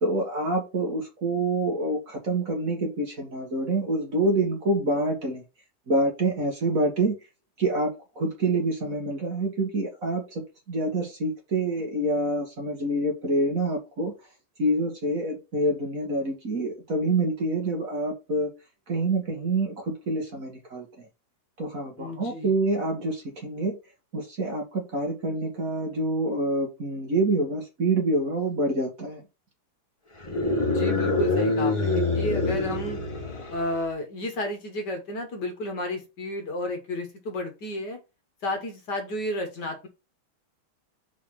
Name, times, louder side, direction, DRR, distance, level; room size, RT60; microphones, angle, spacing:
voice 1, 0.0-5.4 5.9-7.2 7.6-7.9 8.2-10.4 10.7-14.1 14.6-18.5 18.9-19.7 20.1-20.9 21.6-23.8 24.1-29.2, right 2 dB, 40° right, 1 dB, 2.0 m, -26 dB
voice 2, 22.0-22.6 30.7-33.0 33.5-38.0 38.4-39.9, left 1 dB, 55° left, 4 dB, 1.8 m, -32 dB
sound 1, 30.2-33.8, left 2 dB, 20° left, 0.9 m, -25 dB
4.7 x 4.2 x 5.7 m, 0.28 s
omnidirectional pair, 2.3 m